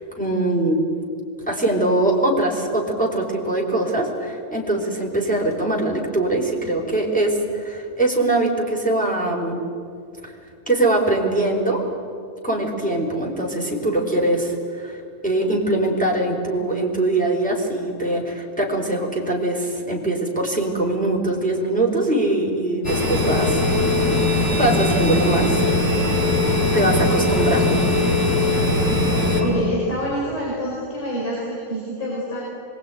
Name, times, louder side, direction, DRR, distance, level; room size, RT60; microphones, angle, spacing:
voice 1, 0.2-0.8 1.5-9.6 10.2-10.3 10.7-11.8 12.4-24.1 24.5-25.7 26.7-27.8, right 2 dB, ahead, -2 dB, 3.7 m, -22 dB
sound 1, 22.8-29.4, left 2 dB, 25° left, 4.9 m, -20 dB
voice 2, 29.4-32.4, equal, 60° left, -5 dB, 6.9 m, -26 dB
25.0 x 22.0 x 9.3 m, 2.4 s
omnidirectional pair, 4.7 m